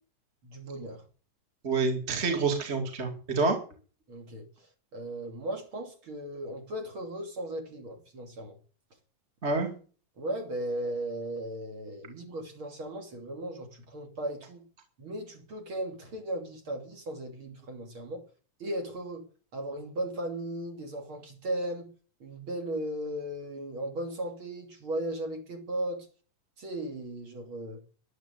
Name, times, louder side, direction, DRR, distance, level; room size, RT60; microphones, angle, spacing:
voice 1, 0.4-1.0 4.1-4.5 4.9-8.6 10.2-14.6 15.0-18.2 18.6-19.2 19.5-21.9 22.2-26.1 26.6-27.8, right 1 dB, 40° right, 3.4 m, -36 dB
voice 2, 1.6-3.6 9.4-9.7, right 4 dB, 20° right, 2.3 m, -27 dB
11.0 x 11.0 x 8.0 m
omnidirectional pair, 3.8 m